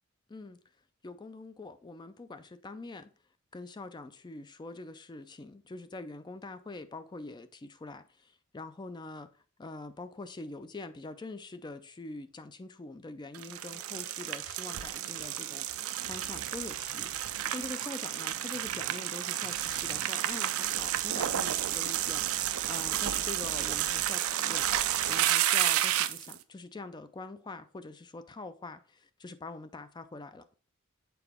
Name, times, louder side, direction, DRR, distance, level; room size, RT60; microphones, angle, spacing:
voice 1, 1.0-3.1 3.5-24.7 25.1-30.4, left 3 dB, 20° left, 0.4 m, -44 dB
sound 1, 13.3-26.3, right 12 dB, 80° right, 0.5 m, -31 dB
6.9 x 4.5 x 3.5 m
head